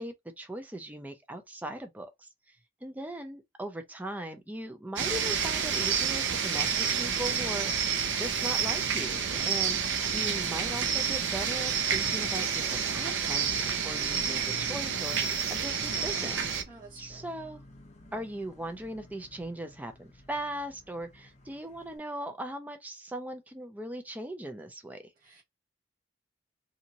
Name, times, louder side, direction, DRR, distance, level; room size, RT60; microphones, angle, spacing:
voice 1, 0.0-2.6 2.8-16.5 16.9-17.6 18.1-25.1, right 1 dB, 10° right, 0.4 m, -39 dB
sound 1, 5.0-16.6, right 7 dB, 70° right, 0.5 m, -29 dB
Vehicle horn car horn honking / Bus, 15.9-22.0, left 1 dB, 35° left, 0.8 m, -54 dB
voice 2, 16.7-17.3 25.2-25.4, right 3 dB, 45° right, 1.1 m, -51 dB
2.6 x 2.6 x 2.9 m
head